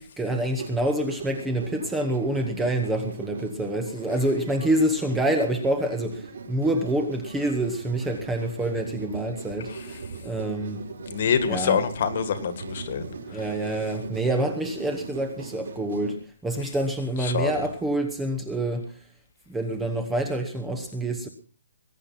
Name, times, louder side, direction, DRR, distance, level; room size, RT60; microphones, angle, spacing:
voice 1, 0.0-10.8 11.5-11.9 13.1-19.1 19.5-21.3, right 1 dB, 5° right, 5 dB, 1.1 m, -27 dB
sound 1, 0.6-16.1, right 4 dB, 55° right, 4.8 m, -40 dB
voice 2, 11.1-13.1 17.3-17.6, left 7 dB, 35° left, 11 dB, 1.9 m, -25 dB
21.0 x 10.0 x 5.8 m, 0.39 s
hypercardioid pair, 180°, 0 cm